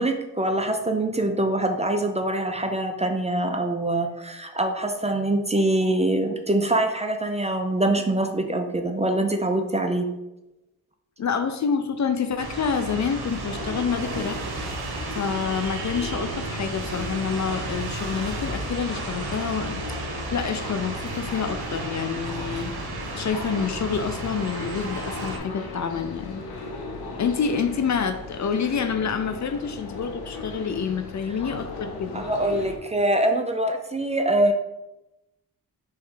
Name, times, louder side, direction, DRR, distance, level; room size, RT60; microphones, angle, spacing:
voice 1, 0.0-10.1 32.1-34.5, right 1 dB, 20° right, 5 dB, 0.5 m, -24 dB
voice 2, 11.2-14.4 15.2-22.7 23.1-26.4 27.2-32.2, left 6 dB, 50° left, 8 dB, 0.5 m, -28 dB
sound 1, 12.4-25.4, right 3 dB, 85° right, 0.8 m, -33 dB
sound 2, 13.4-32.8, left 3 dB, 85° left, 0.8 m, -37 dB
3.3 x 3.1 x 4.8 m, 0.97 s
cardioid pair, 60°, 37 cm